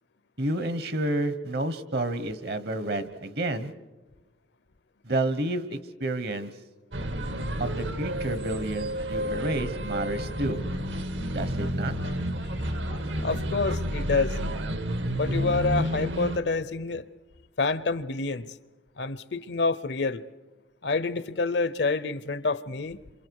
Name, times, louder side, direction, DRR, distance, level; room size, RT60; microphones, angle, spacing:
voice 1, 0.4-3.7 5.0-6.5 7.6-10.6 11.3-11.9, right 1 dB, 55° right, 1.1 m, -30 dB
sound 1, 6.9-16.4, equal, 75° right, 1.4 m, -30 dB
voice 2, 13.2-14.4 15.1-17.1 17.6-18.5 19.0-20.2 20.8-23.0, left 3 dB, 65° left, 0.7 m, -27 dB
28.5 x 27.0 x 4.7 m
head